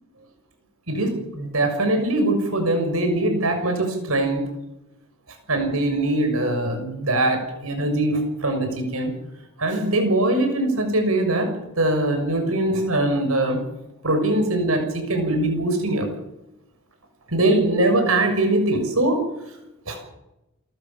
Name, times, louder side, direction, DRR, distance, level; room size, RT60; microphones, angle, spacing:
voice 1, 0.9-4.4 5.5-9.1 9.6-13.6 14.0-16.1 17.3-19.2 19.9-20.0, right 1 dB, 80° right, 5 dB, 6.5 m, -22 dB
28.5 x 14.0 x 7.4 m, 0.92 s
head